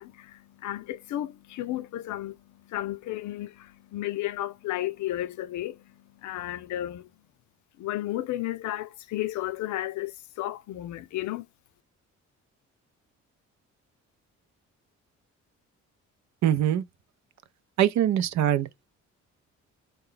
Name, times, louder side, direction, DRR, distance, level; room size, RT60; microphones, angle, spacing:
voice 1, 0.0-7.1 7.8-11.5, left 14 dB, 75° left, 0.5 m, -33 dB
voice 2, 16.4-16.8 17.8-18.7, right 11 dB, 65° right, 0.6 m, -23 dB
4.4 x 2.2 x 3.8 m
cardioid pair, 90°, 30 cm